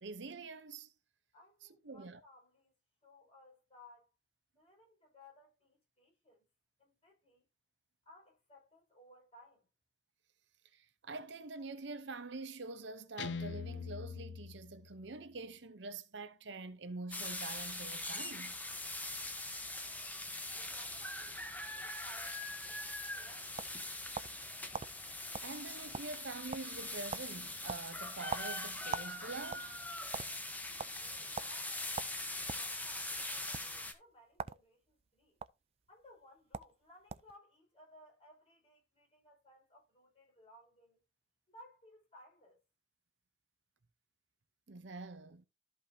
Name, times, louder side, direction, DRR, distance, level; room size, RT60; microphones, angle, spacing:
voice 1, 0.0-0.9 1.8-2.2 10.7-18.6 25.4-29.7 44.7-45.4, right 3 dB, 75° right, 0.8 m, -45 dB
voice 2, 1.3-2.7 3.0-4.1 4.5-6.5 6.8-7.4 8.0-9.7 20.1-23.6 31.0-35.4 35.9-41.0 41.5-42.6, left 1 dB, 35° left, 5.2 m, -61 dB
Guitar, 13.2-15.2, left 5 dB, 70° left, 0.5 m, -43 dB
sound 1, 17.1-33.9, left 2 dB, 10° left, 1.0 m, -42 dB
sound 2, 23.6-24.4 24.7-24.9 25.3-25.5 25.8-26.3 26.5-26.8 27.1-27.3 27.7-29.1 29.4-30.3 30.8-30.9 31.4-31.5 32.0-32.7 33.4-33.6 34.3-34.6 34.9-35.5 36.2-36.3 36.5-36.7 37.1-37.4, right 5 dB, 35° right, 0.3 m, -41 dB
13.5 x 5.4 x 2.8 m
head